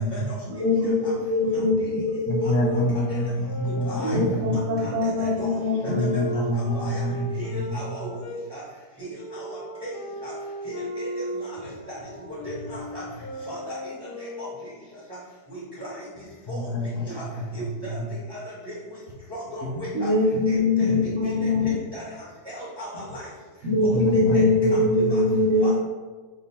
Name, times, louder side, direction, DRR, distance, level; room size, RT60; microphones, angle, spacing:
voice 1, 0.0-0.4 0.8-1.1 1.5-1.9 2.4-2.8 3.1-3.2 3.8-4.2 4.5-5.6 5.8-5.9 6.3-7.0 7.3-8.2 8.5-8.6 9.0-10.0 10.2-10.3 10.6-12.0 12.3-13.0 13.4-14.5 15.5-16.7 17.0-17.2 17.5-18.0 18.3-19.0 19.3-20.1 20.5-20.9 21.2-22.0 22.4-23.3 24.1-24.8 25.1-25.2 25.6-25.7, equal, 25° right, -9 dB, 0.5 m, -38 dB
voice 2, 0.5-2.9 4.0-6.3 19.9-21.8 23.6-25.7, left 2 dB, 65° right, -4 dB, 0.8 m, -22 dB
voice 3, 2.3-4.6 5.9-7.8 16.5-17.0 18.0-18.1 23.9-25.2, left 1 dB, 80° left, 1 dB, 1.1 m, -27 dB
sound 1, 2.6-8.4 9.1-14.8, equal, 55° left, 0.7 m, -37 dB
2.8 x 2.3 x 4.1 m, 1.3 s
omnidirectional pair, 1.7 m